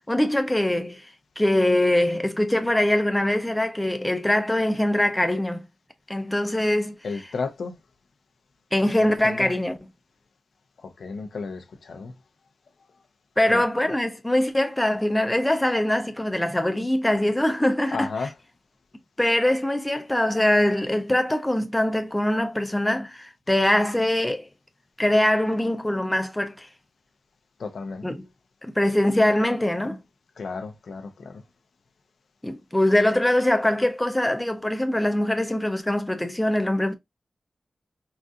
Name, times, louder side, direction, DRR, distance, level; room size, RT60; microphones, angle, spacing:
voice 1, 0.1-1.0 1.4-5.6 6.1-7.2 8.7-9.8 13.4-18.3 19.2-24.5 25.0-26.7 28.0-28.3 28.6-30.0 32.4-36.9, left 1 dB, 10° left, 0.5 m, -23 dB
voice 2, 7.0-7.8 9.0-9.5 11.0-12.1 13.5-13.6 17.9-18.3 27.6-28.0 30.4-31.4, left 4 dB, 90° left, 0.6 m, -33 dB
3.9 x 2.5 x 2.3 m
wide cardioid pair, 125°, 0 cm